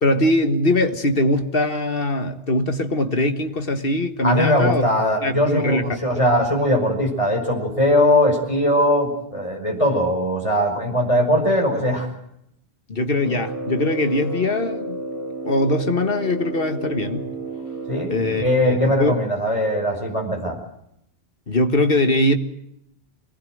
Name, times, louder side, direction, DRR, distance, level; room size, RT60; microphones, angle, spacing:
voice 1, 0.0-4.8 5.2-6.0 12.9-15.0 15.4-17.3 18.1-19.2 21.5-22.4, left 1 dB, 60° left, 1.9 m, -21 dB
voice 2, 4.2-12.1 17.9-20.6, left 1 dB, 30° left, 5.7 m, -20 dB
Brass instrument, 13.1-18.7, right 2 dB, 15° left, 6.9 m, -31 dB
25.0 x 19.5 x 7.9 m
omnidirectional pair, 1.1 m